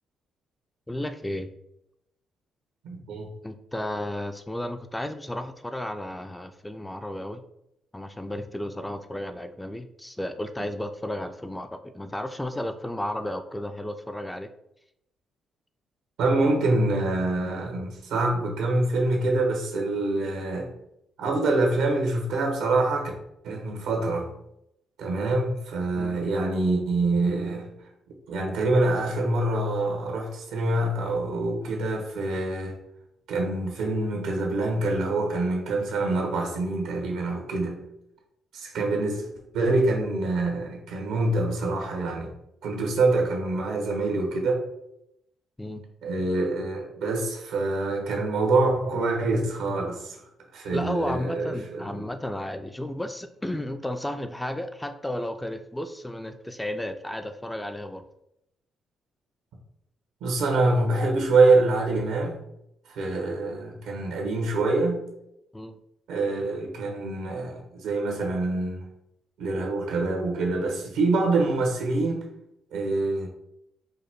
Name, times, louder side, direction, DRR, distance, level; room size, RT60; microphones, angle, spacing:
voice 1, 0.9-1.5 3.4-7.4 7.9-14.5 26.0-26.2 38.7-38.9 45.6-45.8 50.7-58.1 65.5-65.8, left 1 dB, 10° left, 8 dB, 0.4 m, -33 dB
voice 2, 2.8-3.3 16.2-20.7 21.2-23.1 23.4-24.3 25.0-27.7 28.3-32.8 33.3-37.8 38.5-39.3 39.5-42.3 42.6-44.6 46.0-50.2 50.5-52.1 60.2-62.4 62.8-65.0 66.1-68.8 69.4-72.2 72.7-73.3, right 2 dB, 90° right, 1 dB, 1.3 m, -25 dB
5.1 x 2.2 x 4.5 m, 0.80 s
cardioid pair, 90°, 0 cm